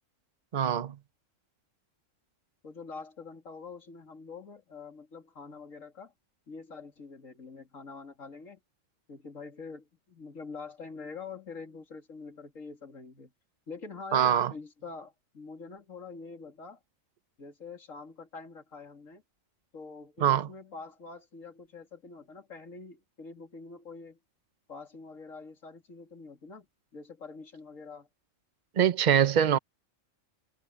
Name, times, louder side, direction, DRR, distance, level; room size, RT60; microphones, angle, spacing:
voice 1, 0.5-1.0 14.1-14.5 20.2-20.5 28.8-29.6, right 9 dB, 40° right, 0.8 m, -23 dB
voice 2, 2.6-6.1 6.5-8.6 9.1-13.3 13.7-16.8 17.4-19.2 19.7-24.2 24.7-26.7 26.9-28.1, left 4 dB, 85° left, 3.1 m, -45 dB
omnidirectional pair, 1.3 m